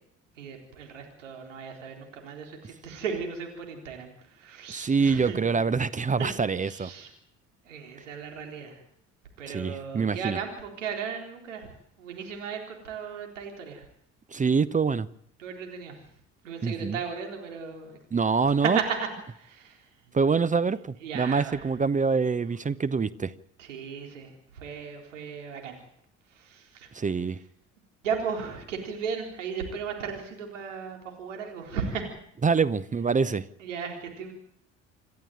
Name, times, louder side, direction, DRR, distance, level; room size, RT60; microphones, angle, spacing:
voice 1, 0.3-5.7 6.1-6.3 6.6-7.1 7.6-8.8 9.4-13.9 15.4-16.1 16.4-18.0 18.6-20.1 21.0-21.7 23.6-25.8 26.3-27.1 28.0-32.1 33.6-34.3, right 6 dB, 80° right, 3 dB, 4.0 m, -36 dB
voice 2, 4.7-6.9 9.5-10.4 14.3-15.1 16.6-17.0 18.1-18.8 20.1-23.3 26.9-27.4 32.4-33.5, right 5 dB, 20° right, 17 dB, 0.9 m, -25 dB
27.5 x 11.5 x 9.0 m, 0.70 s
figure-of-eight pair, 60°, 37 cm